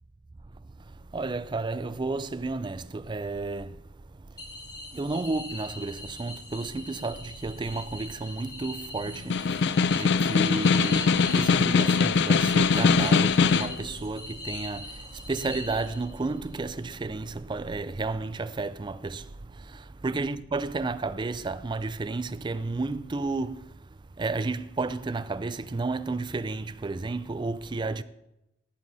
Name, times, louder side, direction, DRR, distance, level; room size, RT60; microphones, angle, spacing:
voice 1, 0.9-3.8 4.1-4.4 4.9-23.7 24.2-28.0, right 3 dB, 25° right, 0.4 m, -32 dB
sound 1, 4.4-16.3, left 2 dB, 20° left, 1.7 m, -42 dB
Snare drum, 9.2-13.8, left 5 dB, 60° left, 0.4 m, -22 dB
17.0 x 7.0 x 4.0 m
head